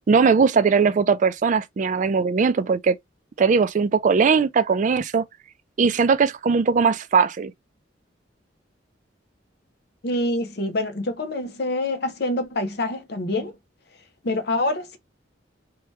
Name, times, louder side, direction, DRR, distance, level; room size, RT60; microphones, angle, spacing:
voice 1, 0.1-3.0 3.4-5.2 5.8-7.5, right 5 dB, 40° right, 0.3 m, -19 dB
voice 2, 10.0-13.5 14.2-15.0, left 2 dB, 60° left, 0.7 m, -26 dB
2.8 x 2.2 x 3.1 m
head